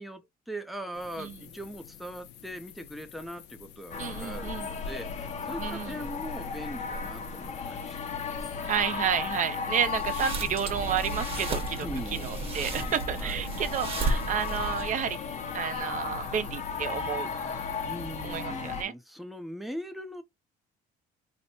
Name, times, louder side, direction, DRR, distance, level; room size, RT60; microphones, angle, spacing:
voice 1, 0.0-8.5 11.8-12.4 13.2-13.4 17.8-20.2, equal, ahead, 0.6 m, -41 dB
sound 1, 0.9-18.5, left 9 dB, 90° left, 0.7 m, -50 dB
sound 2, 3.9-18.8, left 5 dB, 40° left, 0.8 m, -35 dB
voice 2, 4.0-4.7 5.6-6.0 8.6-11.9 12.1-15.2 15.5-17.3 18.2-18.9, right 8 dB, 50° right, 0.8 m, -31 dB
sound 3, 9.9-15.1, right 3 dB, 35° right, 1.3 m, -34 dB
3.0 x 2.2 x 4.1 m
cardioid pair, 110°, 17 cm